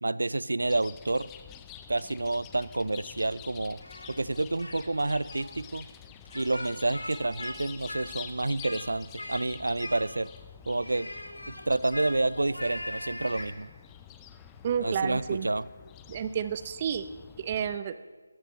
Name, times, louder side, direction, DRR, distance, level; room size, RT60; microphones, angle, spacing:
voice 1, 0.0-1.3 1.9-3.8 4.1-5.9 6.3-10.3 10.7-11.1 11.5-13.7 14.8-15.7, right 2 dB, 70° right, 19 dB, 0.5 m, -29 dB
Chirp tweet, 0.6-17.8, left 9 dB, 10° left, 0.5 m, -48 dB
Speech, 3.8-4.8 5.1-5.4 6.3-7.6 7.9-8.9 9.2-9.5 9.8-10.4 10.8-13.5, left 1 dB, 85° left, 2.9 m, -40 dB
voice 2, 14.6-15.5 16.1-17.1 17.4-17.9, right 8 dB, 25° right, 12 dB, 0.7 m, -30 dB
21.0 x 15.0 x 3.2 m, 1.3 s
figure-of-eight pair, 160°, 0 cm